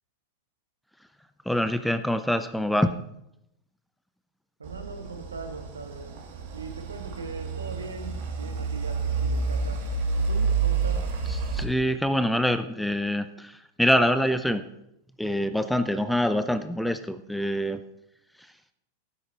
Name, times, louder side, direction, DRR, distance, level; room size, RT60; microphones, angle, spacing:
voice 1, 1.5-2.9 11.5-13.5 13.8-14.6 15.2-17.8, equal, ahead, 12 dB, 0.6 m, -25 dB
sound 1, 4.6-11.6, right 4 dB, 50° right, 2.7 m, -29 dB
voice 2, 4.6-6.1 6.5-9.8 10.1-11.0, right 3 dB, 75° right, 5 dB, 1.7 m, -40 dB
16.5 x 9.8 x 3.0 m, 0.80 s
figure-of-eight pair, 90°, 0 cm